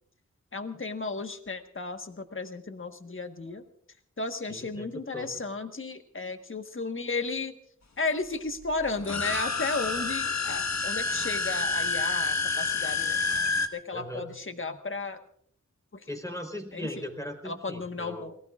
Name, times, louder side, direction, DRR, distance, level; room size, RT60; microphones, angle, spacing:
voice 1, 0.5-3.6 4.2-7.5 8.0-13.2 13.7-15.2 15.9-16.1 16.7-17.0 17.4-18.4, left 3 dB, 40° left, 6 dB, 1.4 m, -34 dB
voice 2, 4.5-4.9 5.1-5.4 13.9-14.4 16.1-18.3, equal, 10° left, 3 dB, 3.9 m, -38 dB
sound 1, 9.0-13.7, left 4 dB, 60° left, 1.5 m, -28 dB
29.0 x 19.5 x 2.5 m, 0.63 s
wide cardioid pair, 45°, 31 cm